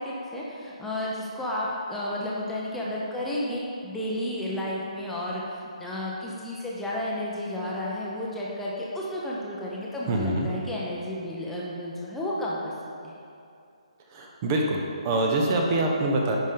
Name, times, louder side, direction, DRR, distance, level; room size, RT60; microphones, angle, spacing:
voice 1, 0.0-12.7 13.0-13.1 15.7-15.8, left 1 dB, 5° left, -6 dB, 0.7 m, -32 dB
voice 2, 10.1-10.5 14.1-16.4, right 2 dB, 25° right, 1 dB, 0.8 m, -25 dB
10.0 x 5.3 x 3.8 m, 2.5 s
figure-of-eight pair, 140°, 4 cm